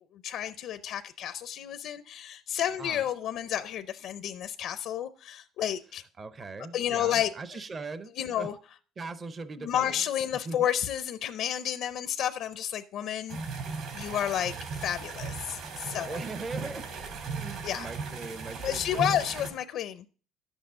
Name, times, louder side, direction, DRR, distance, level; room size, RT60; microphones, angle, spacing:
voice 1, 0.2-6.0 6.7-7.3 8.2-8.5 9.6-13.4 13.9-14.5 14.8-16.2 17.6-17.9 18.6-20.1, left 10 dB, 65° left, 0.6 m, -31 dB
voice 2, 6.2-8.5 9.0-10.7 16.0-19.3, right 3 dB, 30° right, 0.7 m, -40 dB
sound 1, 13.3-19.5, right 4 dB, 65° right, 3.2 m, -37 dB
11.0 x 8.1 x 3.7 m
cardioid pair, 140°, 0 cm